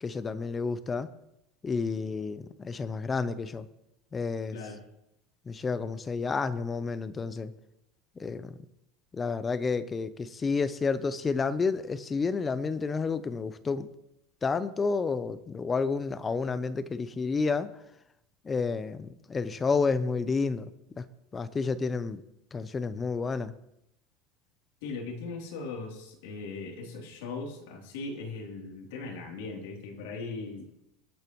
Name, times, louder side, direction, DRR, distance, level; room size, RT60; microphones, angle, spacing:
voice 1, 0.0-1.1 1.6-3.7 4.1-4.6 5.5-7.5 8.2-8.6 9.1-13.9 14.4-17.7 18.4-20.6 21.0-21.1 21.3-22.2 22.5-23.5, left 4 dB, 20° left, 14 dB, 0.7 m, -30 dB
voice 2, 24.8-30.7, left 3 dB, 85° left, 0 dB, 3.2 m, -39 dB
23.5 x 8.7 x 3.1 m, 0.85 s
supercardioid pair, 145°, 0 cm